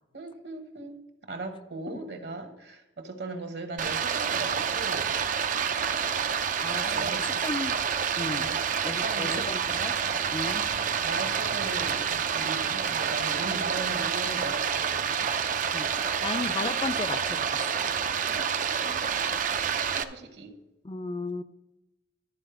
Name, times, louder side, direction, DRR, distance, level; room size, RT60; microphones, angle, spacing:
voice 1, 0.1-5.1 6.8-7.4 8.3-9.5 11.0-15.4 18.3-19.0 20.0-20.5, right 3 dB, 60° right, 6 dB, 1.1 m, -38 dB
Stream, 3.8-20.0, right 7 dB, 45° right, 0.5 m, -28 dB
voice 2, 6.6-7.8 8.2-8.5 8.8-10.0 10.3-10.6 15.7-15.9 16.2-17.5 20.8-21.4, left 3 dB, 25° left, 13 dB, 0.4 m, -34 dB
12.0 x 4.2 x 6.7 m, 0.97 s
head